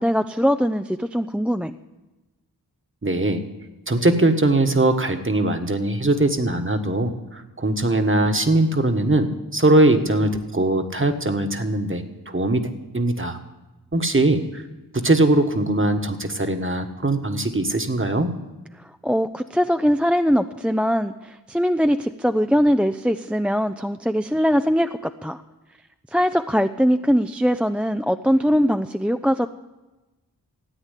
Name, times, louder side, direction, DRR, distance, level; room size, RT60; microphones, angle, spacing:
voice 1, 0.0-1.7 19.0-25.4 26.1-29.5, equal, 5° right, 8 dB, 0.4 m, -21 dB
voice 2, 3.0-3.4 3.9-13.4 13.9-14.6 14.9-18.3, right 2 dB, 30° right, 6 dB, 1.4 m, -21 dB
14.5 x 9.0 x 8.2 m, 1.1 s
wide cardioid pair, 45°, 39 cm